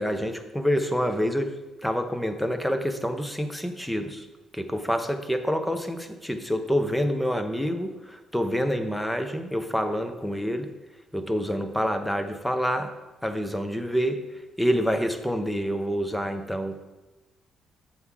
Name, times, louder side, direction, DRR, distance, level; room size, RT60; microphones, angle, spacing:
voice 1, 0.0-1.5 1.8-4.2 4.5-10.7 11.1-12.9 13.2-14.2 14.6-16.8, equal, 5° left, 7 dB, 0.6 m, -27 dB
7.1 x 5.5 x 4.7 m, 1.1 s
cardioid pair, 145°, 0 cm